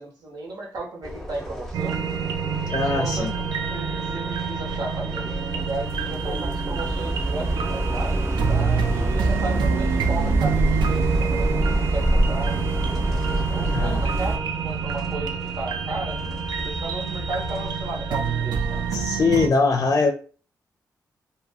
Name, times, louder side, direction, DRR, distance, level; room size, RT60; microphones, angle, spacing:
voice 1, 0.0-2.0 2.7-3.3 3.7-12.6 13.3-14.3 14.6-18.9, right 2 dB, 65° right, 0 dB, 1.0 m, -34 dB
sound 1, 1.0-19.1, equal, 5° left, 0.7 m, -36 dB
sound 2, 1.7-19.5, right 6 dB, 90° right, 0.4 m, -28 dB
voice 2, 2.7-3.3 13.7-14.0 18.9-20.1, left 4 dB, 45° left, 4 dB, 0.5 m, -21 dB
sound 3, 5.4-14.4, right 1 dB, 35° right, 0.7 m, -25 dB
2.3 x 2.2 x 3.4 m, 0.38 s
cardioid pair, 60°, 7 cm